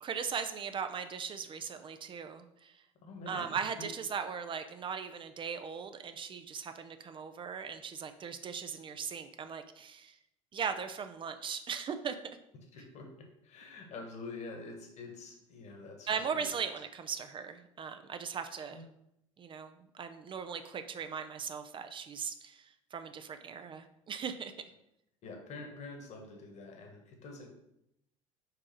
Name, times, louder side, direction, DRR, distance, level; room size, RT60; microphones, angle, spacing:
voice 1, 0.0-2.8 3.3-10.2 10.5-12.2 16.1-18.8 19.4-24.5, right 6 dB, 30° right, 8 dB, 0.5 m, -39 dB
voice 2, 3.0-3.5 12.7-13.1 13.4-16.5 18.7-18.8 25.2-27.5, left 3 dB, 45° left, 3 dB, 1.5 m, -46 dB
4.8 x 4.7 x 4.4 m, 0.81 s
figure-of-eight pair, 70°, 16 cm